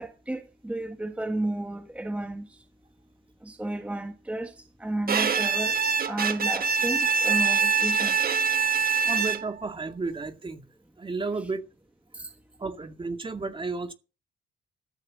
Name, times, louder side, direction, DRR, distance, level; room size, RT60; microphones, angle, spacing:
voice 1, 0.0-2.6 3.4-5.8 6.0-9.0 12.1-12.3, right 1 dB, 5° right, 1.6 m, -33 dB
Bowed string instrument, 5.1-9.7, right 5 dB, 50° right, 1.3 m, -24 dB
voice 2, 9.1-10.7 11.0-11.7 12.6-13.9, right 3 dB, 25° right, 2.2 m, -32 dB
14.0 x 6.6 x 7.7 m
cardioid pair, 90°, 20 cm